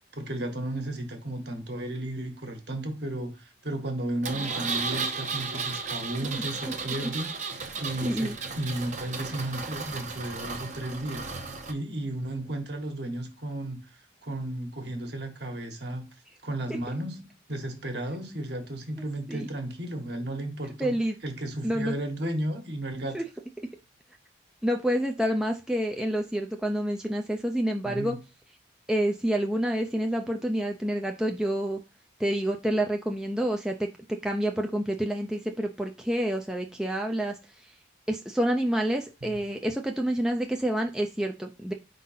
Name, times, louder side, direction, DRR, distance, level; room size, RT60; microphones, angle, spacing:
voice 1, 0.1-7.3 7.8-13.8 14.2-16.0 16.4-20.9 21.2-23.2 27.8-28.2 39.2-39.3, right 1 dB, 60° right, 1.5 m, -34 dB
Engine, 4.2-11.7, right 4 dB, 40° right, 0.8 m, -34 dB
voice 2, 8.0-8.3 19.3-19.5 20.6-21.1 21.6-21.9 23.1-23.2 24.6-28.2 28.9-31.8 32.2-37.7 38.1-41.7, right 1 dB, 5° right, 0.5 m, -28 dB
5.1 x 3.8 x 5.6 m
head